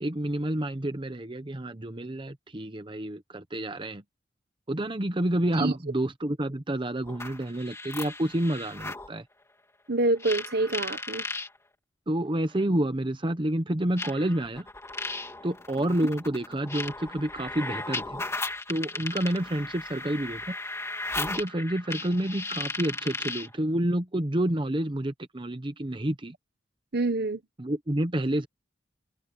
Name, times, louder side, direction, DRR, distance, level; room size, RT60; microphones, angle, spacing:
voice 1, 0.0-4.0 4.7-9.3 12.1-14.7 15.4-18.2 18.7-20.6 21.1-26.3 27.6-28.5, right 1 dB, 25° right, 1.0 m, -29 dB
sound 1, 7.0-9.1 10.2-11.5 12.6-12.7 14.0-23.6, left 2 dB, 15° left, 3.2 m, -36 dB
voice 2, 9.9-11.2 26.9-27.4, right 2 dB, 55° right, 1.3 m, -26 dB
head